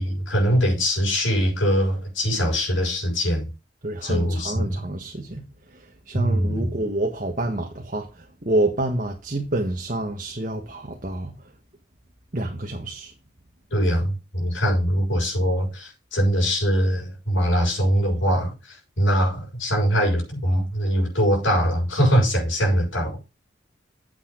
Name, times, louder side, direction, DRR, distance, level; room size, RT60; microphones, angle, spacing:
voice 1, 0.0-3.5 4.0-4.9 6.1-6.7 13.7-18.5 19.0-23.2, equal, 85° left, 6.4 m, -22 dB
voice 2, 3.8-5.4 5.7-11.3 12.3-13.1, right 1 dB, 40° right, 1.4 m, -28 dB
8.8 x 8.3 x 3.9 m
head